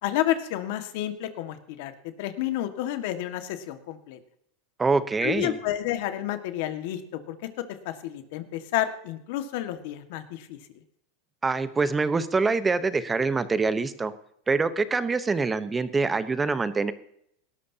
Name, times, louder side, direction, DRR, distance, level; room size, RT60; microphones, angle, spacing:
voice 1, 0.0-1.9 2.2-4.2 5.2-7.4 7.9-10.6, left 13 dB, 65° left, 8 dB, 1.7 m, -30 dB
voice 2, 4.8-5.6 11.4-14.1 14.5-16.9, right 4 dB, 15° right, 13 dB, 0.9 m, -25 dB
18.0 x 12.5 x 2.9 m, 0.71 s
supercardioid pair, 135°, 0 cm